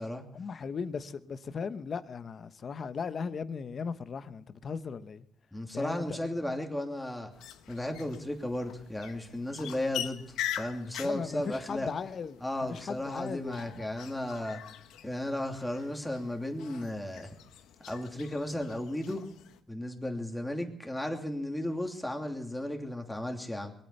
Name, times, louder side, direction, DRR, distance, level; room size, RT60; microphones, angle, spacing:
voice 1, 0.3-5.2 5.7-6.2 11.0-12.4 12.7-13.6, left 5 dB, 50° left, 1.0 m, -37 dB
voice 2, 5.5-7.3 7.7-10.3 10.6-11.9 12.4-14.6 15.0-17.3 17.8-19.2 19.7-23.7, left 1 dB, 5° left, 2.9 m, -34 dB
sound 1, 7.3-19.6, left 11 dB, 90° left, 1.1 m, -43 dB
22.0 x 9.0 x 6.7 m
cardioid pair, 90°, 0 cm